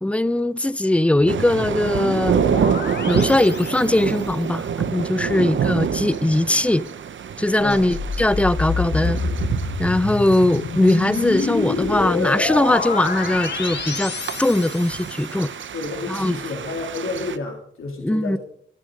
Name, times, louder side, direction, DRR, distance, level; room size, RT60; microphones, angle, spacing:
voice 1, 0.0-2.4 3.1-6.8 7.4-9.2 9.8-14.1 14.4-15.5 16.1-16.4 18.0-18.4, left 1 dB, 5° left, 0.6 m, -20 dB
sound 1, 1.1-4.3 7.6-15.3, left 4 dB, 55° left, 1.8 m, -28 dB
sound 2, 1.3-17.4, right 7 dB, 65° right, 0.9 m, -28 dB
voice 2, 7.6-7.9 15.7-18.4, left 3 dB, 80° left, 3.4 m, -30 dB
22.0 x 12.5 x 5.3 m
wide cardioid pair, 130°, 21 cm